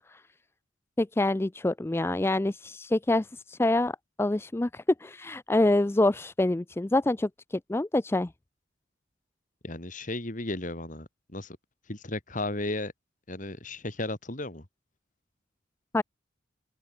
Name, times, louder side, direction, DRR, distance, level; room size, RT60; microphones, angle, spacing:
voice 1, 1.0-8.3 15.9-16.0, left 2 dB, 10° left, 0.4 m, -26 dB
voice 2, 9.6-11.6 11.9-12.9 13.3-14.7, left 2 dB, 40° left, 2.5 m, -34 dB
open air
head